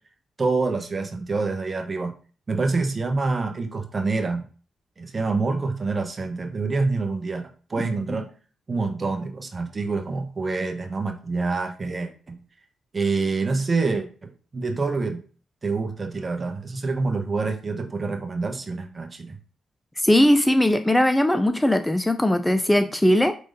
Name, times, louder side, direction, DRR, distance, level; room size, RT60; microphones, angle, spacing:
voice 1, 0.4-2.1 2.5-4.4 5.0-8.2 8.7-12.3 12.9-15.2 15.6-19.4, right 3 dB, 40° right, 1.1 m, -26 dB
voice 2, 20.0-23.3, left 1 dB, 10° left, 0.4 m, -19 dB
5.3 x 3.1 x 2.7 m
hypercardioid pair, 40°, 0 cm